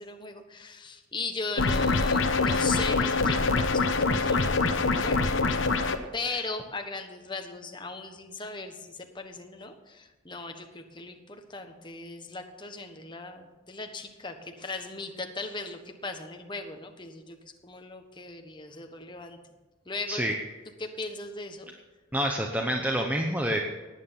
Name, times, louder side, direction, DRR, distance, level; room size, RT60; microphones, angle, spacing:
voice 1, 0.0-5.2 6.1-17.4 17.6-19.4 19.8-20.2 20.8-21.7, left 3 dB, 25° left, 5 dB, 1.3 m, -38 dB
sound 1, 1.6-6.0, left 3 dB, 65° left, 1.1 m, -24 dB
voice 2, 22.1-23.6, right 1 dB, 10° right, 1 dB, 0.9 m, -27 dB
18.0 x 9.4 x 5.8 m, 1.2 s
head